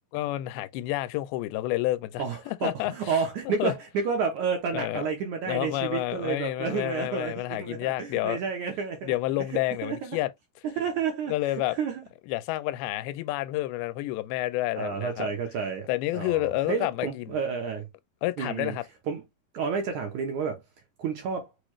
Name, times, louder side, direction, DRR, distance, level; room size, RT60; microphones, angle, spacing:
voice 1, 0.1-2.9 3.5-3.7 4.7-5.0 5.5-8.4 9.0-10.3 11.3-11.8 12.3-15.3 15.9-17.2 18.2-18.8, left 16 dB, 90° left, 2.4 m, -29 dB
voice 2, 2.2-9.2 9.5-10.2 10.8-12.0 14.8-15.9 16.1-17.9 18.4-18.8 19.1-19.2 19.5-20.6 21.0-21.5, right 6 dB, 70° right, 1.9 m, -30 dB
6.4 x 2.4 x 3.1 m
omnidirectional pair, 4.3 m